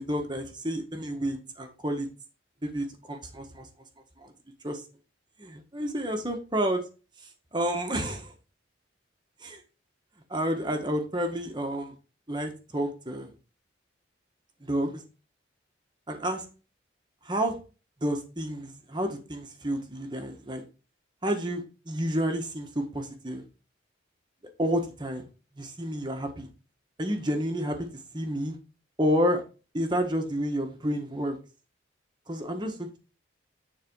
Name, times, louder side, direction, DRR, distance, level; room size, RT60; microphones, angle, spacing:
voice 1, 0.0-2.1 2.6-3.7 4.2-4.3 4.6-4.8 5.4-6.8 7.5-8.3 9.4-9.6 10.3-12.0 12.3-13.3 14.6-15.0 16.1-16.4 17.2-17.6 18.0-20.6 21.2-23.4 24.6-25.2 25.5-26.5 27.0-27.9 28.1-28.6 29.0-29.4 29.7-31.4 32.3-33.0, equal, 25° right, 1.5 m, -30 dB
9.6 x 4.3 x 4.7 m
head